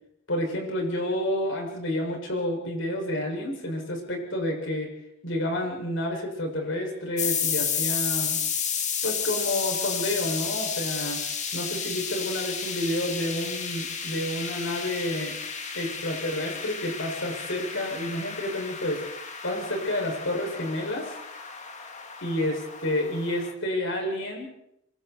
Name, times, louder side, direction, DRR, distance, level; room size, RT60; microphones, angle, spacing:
voice 1, 0.3-4.9 5.2-8.4 9.0-11.2 11.5-15.3 15.7-19.0 19.4-21.1 22.2-24.5, left 1 dB, 75° left, 1 dB, 7.2 m, -29 dB
sound 1, 7.2-23.5, left 6 dB, 40° left, 2.2 m, -32 dB
27.0 x 24.0 x 4.7 m, 0.81 s
head